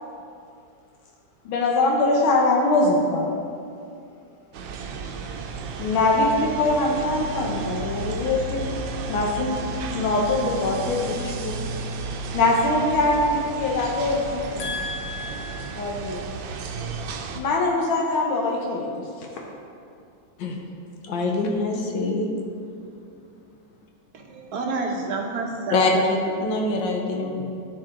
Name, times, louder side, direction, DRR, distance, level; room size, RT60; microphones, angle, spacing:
voice 1, 1.4-3.4 5.8-8.7 9.1-9.6 9.9-11.6 12.3-14.7 15.7-16.2 17.3-19.3, left 2 dB, 90° left, -1 dB, 1.7 m, -23 dB
sound 1, 4.5-17.4, right 4 dB, 80° right, 1.4 m, -33 dB
voice 2, 14.6-15.8 20.4-20.6 21.1-22.3 25.7-27.4, left 2 dB, 70° left, 1 dB, 1.5 m, -25 dB
voice 3, 24.1-26.4 27.4-27.5, right 3 dB, 55° right, 0 dB, 1.3 m, -30 dB
13.0 x 4.7 x 3.7 m, 2.5 s
omnidirectional pair, 2.2 m